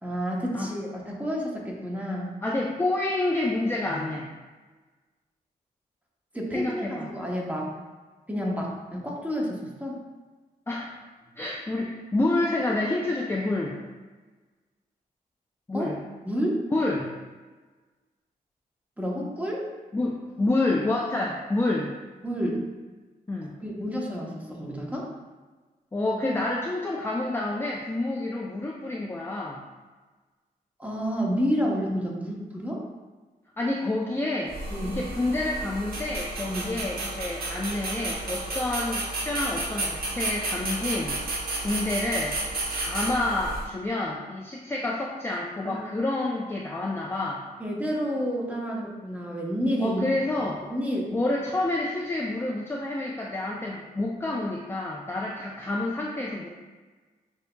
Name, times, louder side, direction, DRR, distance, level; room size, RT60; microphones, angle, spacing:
voice 1, 0.0-2.3 6.3-7.7 8.3-10.0 15.7-15.9 16.3-16.6 19.0-19.6 22.2-22.6 23.6-25.1 30.8-32.8 34.7-35.0 36.5-36.7 45.6-45.8 47.6-50.0 50.7-51.1, equal, 10° right, -2 dB, 0.8 m, -29 dB
voice 2, 2.4-4.3 6.5-7.1 10.7-10.9 11.4-13.8 15.7-16.0 16.7-17.1 19.9-21.9 23.3-23.5 25.9-29.6 33.6-34.5 34.8-41.2 41.6-42.3 42.7-47.4 49.8-50.7 51.1-56.5, left 2 dB, 15° left, -2 dB, 0.4 m, -28 dB
sound 1, 34.5-43.6, right 2 dB, 75° right, 0.9 m, -32 dB
6.3 x 2.7 x 2.2 m, 1.3 s
cardioid pair, 80°, 16 cm